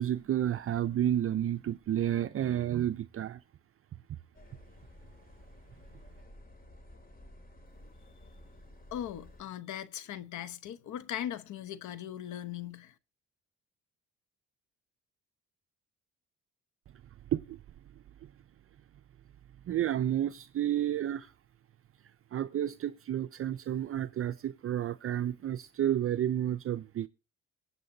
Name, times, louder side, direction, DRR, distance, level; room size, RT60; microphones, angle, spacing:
voice 1, 0.0-3.4 4.1-4.2 17.3-17.6 19.7-21.3 22.3-27.1, right 11 dB, 45° right, 0.5 m, -31 dB
sound 1, 4.3-9.4, left 1 dB, 30° left, 2.7 m, -53 dB
voice 2, 8.9-12.9, left 11 dB, 75° left, 1.0 m, -39 dB
23.5 x 8.6 x 2.7 m
cardioid pair, 90°, 30 cm